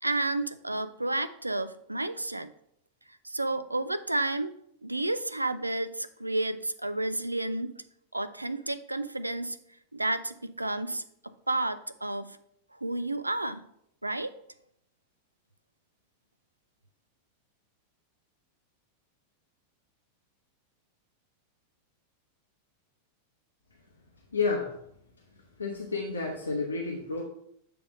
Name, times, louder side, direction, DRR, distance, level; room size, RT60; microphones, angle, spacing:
voice 1, 0.0-2.5 3.2-4.5 4.8-7.7 8.1-9.6 9.9-11.0 11.5-12.4 12.8-13.6 14.0-14.3, right 2 dB, 85° right, 14 dB, 0.3 m, -31 dB
voice 2, 24.3-24.8 25.3-27.2, left 4 dB, 80° left, 0 dB, 0.8 m, -31 dB
7.9 x 3.4 x 5.0 m, 0.73 s
figure-of-eight pair, 90°, 0 cm